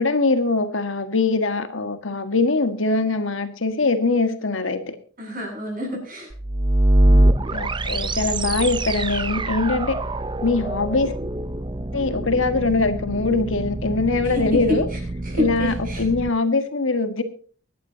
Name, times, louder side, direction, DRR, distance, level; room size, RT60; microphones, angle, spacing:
voice 1, 0.0-5.0 7.5-10.0 10.4-11.1 11.9-14.9 15.4-17.2, left 3 dB, 70° left, 1.7 m, -22 dB
voice 2, 5.2-6.3 7.4-7.7 14.2-16.1, left 1 dB, 40° right, 7.5 m, -28 dB
sound 1, 6.3-16.3, right 1 dB, 20° right, 0.6 m, -24 dB
24.5 x 11.0 x 2.8 m
head